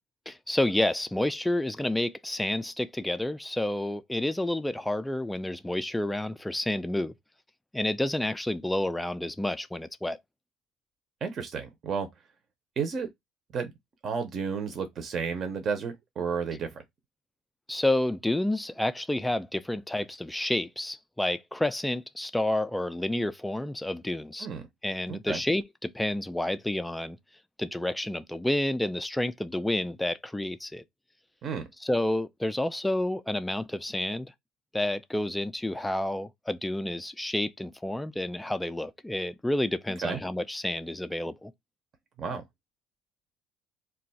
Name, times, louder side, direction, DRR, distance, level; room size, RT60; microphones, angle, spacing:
voice 1, 0.3-7.1 7.7-10.2 17.7-24.5 24.8-27.2 27.6-30.8 31.8-34.3 34.7-41.5, left 1 dB, 5° left, 0.3 m, -29 dB
voice 2, 11.2-12.1 12.8-13.1 13.5-13.7 14.0-16.8 24.4-24.6 25.1-25.4 31.4-31.7 40.0-40.2 42.2-42.4, right 5 dB, 40° right, 0.6 m, -32 dB
2.4 x 2.3 x 4.0 m
cardioid pair, 120°, 0 cm